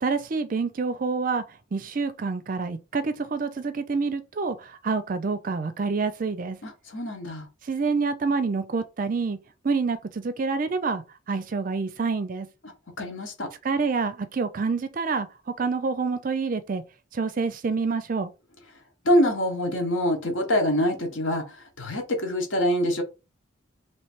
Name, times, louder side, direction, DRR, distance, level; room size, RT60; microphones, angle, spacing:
voice 1, 0.0-1.4 1.7-6.6 7.7-9.4 9.6-11.0 11.3-12.5 13.6-15.3 15.6-16.8 17.1-18.3, right 4 dB, 40° right, 0.4 m, -27 dB
voice 2, 6.6-7.5 13.0-13.5 19.0-21.5 21.8-23.0, equal, 70° left, 1.3 m, -25 dB
3.2 x 3.0 x 4.4 m
head